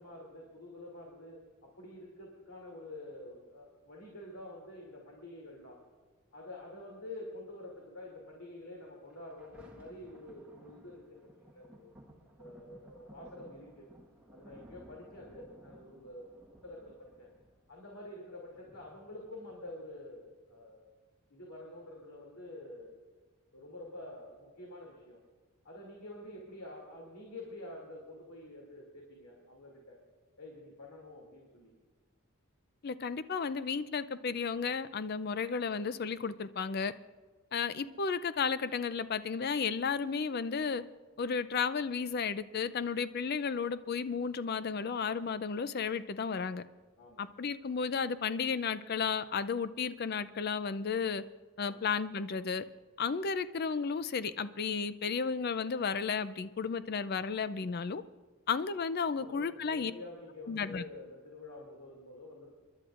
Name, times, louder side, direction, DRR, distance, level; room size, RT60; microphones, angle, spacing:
voice 1, 0.0-5.8 6.3-11.9 12.4-13.9 14.3-16.3 16.6-17.3 17.7-20.9 21.3-22.9 23.5-25.2 25.6-30.0 30.4-31.7 47.0-47.3 51.6-51.8 59.1-62.5, left 1 dB, 75° left, 2.7 m, -48 dB
Thunder, 9.0-20.0 20.7-20.8, right 1 dB, 5° right, 1.4 m, -58 dB
voice 2, 32.8-36.9 37.5-40.8 41.2-46.6 47.2-51.2 51.6-52.6 53.0-58.0 58.5-59.9 60.5-60.8, left 5 dB, 45° left, 0.4 m, -33 dB
29.0 x 11.5 x 2.5 m
head